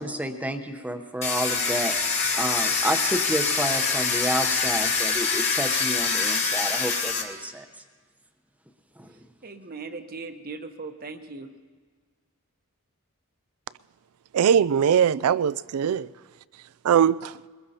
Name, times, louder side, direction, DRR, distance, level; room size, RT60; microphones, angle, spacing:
voice 1, 0.0-2.0 2.4-7.7 9.0-9.1, right 1 dB, 5° right, 0.8 m, -30 dB
Domestic sounds home sounds, 1.2-7.2, left 4 dB, 30° left, 1.5 m, -25 dB
voice 2, 9.4-11.5, right 4 dB, 40° right, 1.0 m, -38 dB
voice 3, 14.3-16.1 16.8-17.3, right 8 dB, 80° right, 0.3 m, -21 dB
22.5 x 21.0 x 2.8 m
head